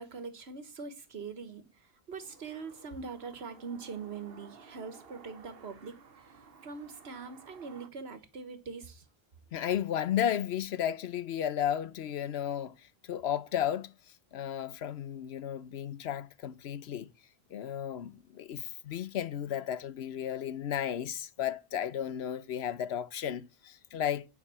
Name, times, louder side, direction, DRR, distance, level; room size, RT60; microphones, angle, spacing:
voice 1, 0.0-9.0, right 5 dB, 85° right, 1.6 m, -43 dB
sound 1, 2.2-7.9, right 4 dB, 65° right, 1.3 m, -55 dB
voice 2, 9.5-13.9 14.3-17.1 17.5-24.3, left 10 dB, 85° left, 1.0 m, -34 dB
9.6 x 5.4 x 6.9 m
omnidirectional pair, 1.0 m